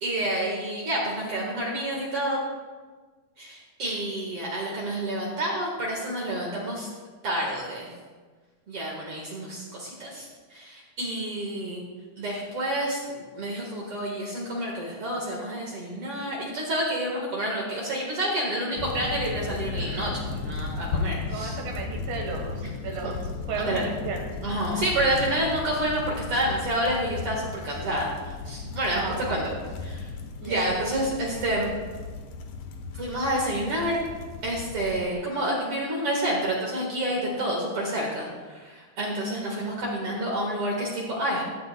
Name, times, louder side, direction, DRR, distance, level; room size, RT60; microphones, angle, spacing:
voice 1, 0.0-2.4 3.4-6.9 7.2-7.9 8.7-11.8 12.2-21.5 23.6-23.9 24.4-28.1 28.5-29.0 29.3-29.5 29.8-30.1 30.4-31.7 33.0-34.0 34.4-41.4, right 1 dB, 55° right, -2 dB, 2.3 m, -29 dB
sound 1, 18.8-35.1, left 4 dB, 75° left, 2.2 m, -35 dB
voice 2, 21.3-23.2 23.5-24.3 28.9-29.5 30.4-30.8, right 4 dB, 85° right, 0 dB, 2.8 m, -34 dB
16.5 x 12.5 x 2.2 m, 1.4 s
omnidirectional pair, 3.4 m